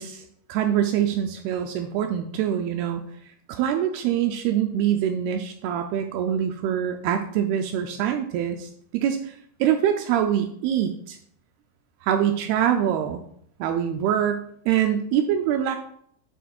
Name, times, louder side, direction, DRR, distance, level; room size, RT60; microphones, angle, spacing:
voice 1, 0.0-3.0 3.5-9.3 9.6-11.2 12.0-13.2 13.6-15.8, right 10 dB, 85° right, 5 dB, 2.3 m, -24 dB
8.4 x 7.0 x 2.4 m, 0.65 s
omnidirectional pair, 5.0 m